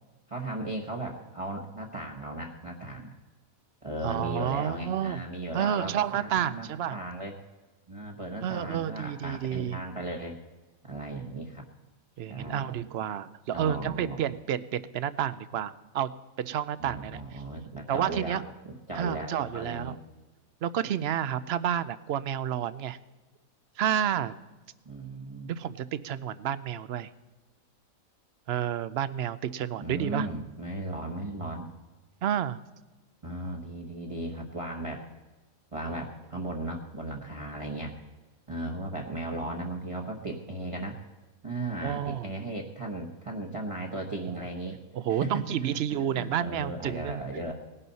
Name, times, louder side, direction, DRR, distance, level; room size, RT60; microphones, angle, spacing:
voice 1, 0.3-3.1 3.8-7.3 7.9-10.4 10.8-11.6 12.3-12.7 13.5-14.2 16.8-18.4 18.7-20.0 24.8-25.5 29.8-31.7 33.2-35.0 35.7-37.9 38.5-41.0 41.4-44.8 45.1-45.4 45.9-47.5, right 2 dB, 25° right, -1 dB, 1.1 m, -36 dB
voice 2, 4.0-5.2 5.5-7.0 8.4-9.8 12.2-16.1 16.4-17.4 17.9-18.4 18.9-20.0 20.6-23.0 23.8-24.4 25.5-27.1 28.5-30.3 32.2-32.6 41.8-42.3 44.3-44.4 44.9-47.2, right 10 dB, 65° right, 16 dB, 0.7 m, -30 dB
19.0 x 11.0 x 4.1 m, 1.2 s
omnidirectional pair, 1.5 m